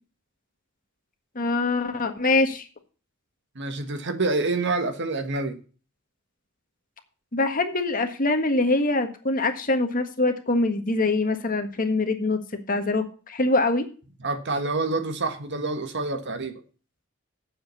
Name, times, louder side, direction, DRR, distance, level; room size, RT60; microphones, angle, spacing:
voice 1, 1.3-2.7 7.3-12.4 12.7-13.8, left 2 dB, 40° left, 1.6 m, -24 dB
voice 2, 3.5-5.6 14.2-16.6, right 3 dB, 55° right, 1.4 m, -27 dB
9.1 x 7.5 x 6.9 m
head